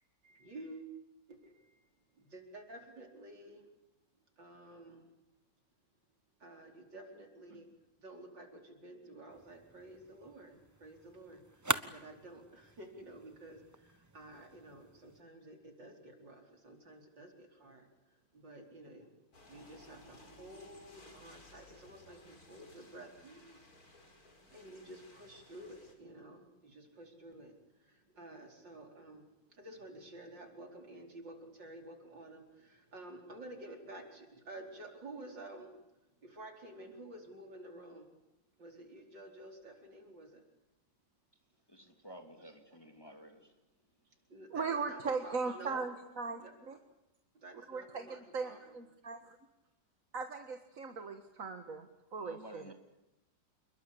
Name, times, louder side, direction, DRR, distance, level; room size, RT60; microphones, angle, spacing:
voice 1, 0.2-0.9 1.3-3.7 4.4-5.1 6.4-23.6 24.4-38.1 38.6-40.4 42.4-42.8 43.1-43.2 44.1-45.8 46.4-46.5 47.3-48.8 51.4-51.5, right 1 dB, 75° right, 5.3 m, -52 dB
sound 1, 9.3-15.2, right 2 dB, 15° right, 0.6 m, -43 dB
sound 2, 19.3-25.9, left 2 dB, 50° left, 5.0 m, -59 dB
voice 2, 41.7-43.5 52.2-52.7, right 1 dB, 10° left, 2.8 m, -52 dB
voice 3, 44.5-46.8 47.7-48.1 48.3-49.4 50.1-51.9 52.1-52.6, right 4 dB, 45° right, 2.0 m, -38 dB
29.0 x 22.0 x 8.6 m
omnidirectional pair, 2.0 m